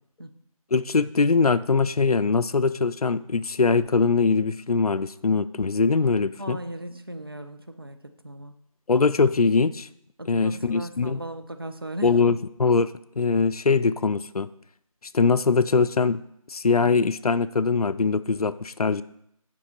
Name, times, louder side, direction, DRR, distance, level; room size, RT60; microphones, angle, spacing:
voice 1, 0.7-6.6 8.9-9.9 10.3-11.2 12.0-14.5 15.1-16.2 16.5-19.0, left 4 dB, 85° left, 15 dB, 0.4 m, -22 dB
voice 2, 6.4-8.5 10.2-12.3, right 1 dB, 40° right, 8 dB, 0.5 m, -37 dB
7.5 x 5.3 x 4.0 m, 0.75 s
figure-of-eight pair, 170°, 19 cm